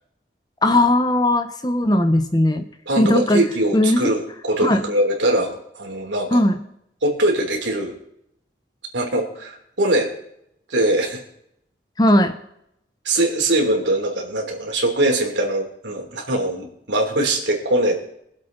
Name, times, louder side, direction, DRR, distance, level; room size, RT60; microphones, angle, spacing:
voice 1, 0.6-2.7 3.0-3.4 3.7-4.2 4.6-4.8 6.3-6.6 12.0-12.3, left 1 dB, 20° left, 8 dB, 0.8 m, -18 dB
voice 2, 2.9-4.2 4.5-6.4 7.0-7.9 8.9-10.1 10.7-11.2 13.0-18.0, right 1 dB, 90° right, 1 dB, 3.2 m, -22 dB
23.0 x 8.0 x 4.0 m, 0.75 s
head